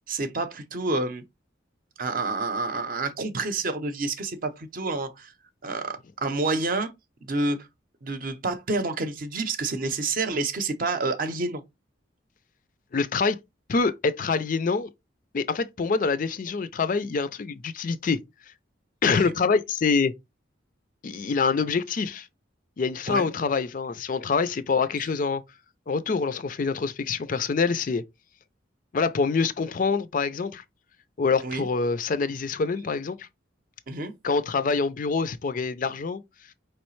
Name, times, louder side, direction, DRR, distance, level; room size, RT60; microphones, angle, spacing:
voice 1, 0.1-1.2 2.0-5.3 5.6-6.9 7.2-7.7 8.0-11.6 19.2-19.3 23.1-23.3 31.4-31.7 33.9-34.1, right 3 dB, 45° right, 0.6 m, -28 dB
voice 2, 12.9-13.4 13.7-14.9 15.3-18.2 19.0-20.1 21.0-22.3 22.8-25.4 25.9-28.0 28.9-30.6 31.2-33.3 34.2-36.2, left 4 dB, 45° left, 0.4 m, -25 dB
4.8 x 3.1 x 3.1 m
head